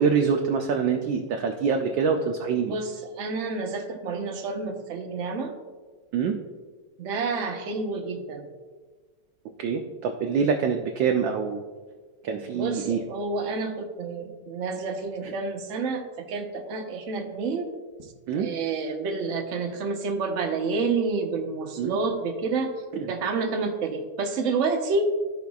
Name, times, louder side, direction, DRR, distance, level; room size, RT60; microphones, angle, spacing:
voice 1, 0.0-2.7 6.1-6.4 9.6-11.6 12.2-13.0 15.2-15.3 18.3-18.5 21.8-22.0 22.9-23.1, right 6 dB, 75° right, 4 dB, 1.1 m, -25 dB
voice 2, 2.7-5.5 7.0-8.5 12.5-17.7 18.4-22.7 23.1-25.2, right 4 dB, 60° right, 3 dB, 0.8 m, -29 dB
13.5 x 5.1 x 2.3 m, 1.4 s
omnidirectional pair, 2.4 m